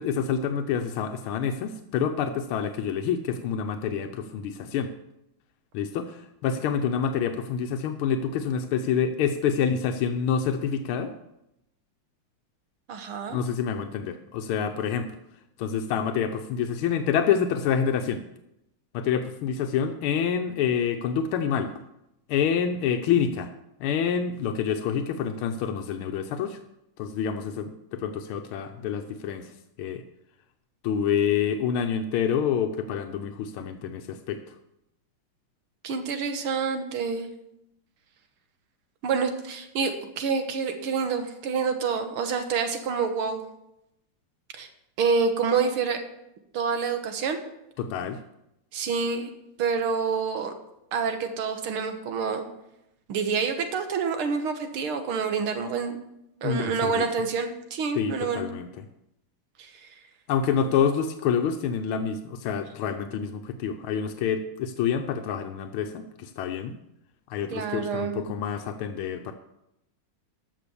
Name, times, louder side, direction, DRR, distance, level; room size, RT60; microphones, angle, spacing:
voice 1, 0.0-4.9 5.7-11.1 13.3-15.1 15.6-18.2 18.9-21.7 22.3-23.5 23.8-26.6 27.0-29.5 29.8-30.0 30.8-34.4 47.8-48.2 56.4-57.1 58.0-58.7 60.3-66.8 67.3-69.3, left 7 dB, 90° left, 6 dB, 1.6 m, -27 dB
voice 2, 12.9-13.4 35.8-37.3 39.0-43.4 44.6-44.7 45.0-46.0 46.5-47.4 48.7-49.3 49.6-50.5 50.9-52.5 53.1-56.0 56.4-58.5 59.6-59.7 67.5-68.3, right 5 dB, 90° right, 7 dB, 2.1 m, -27 dB
14.0 x 5.9 x 6.9 m, 0.85 s
omnidirectional pair, 2.3 m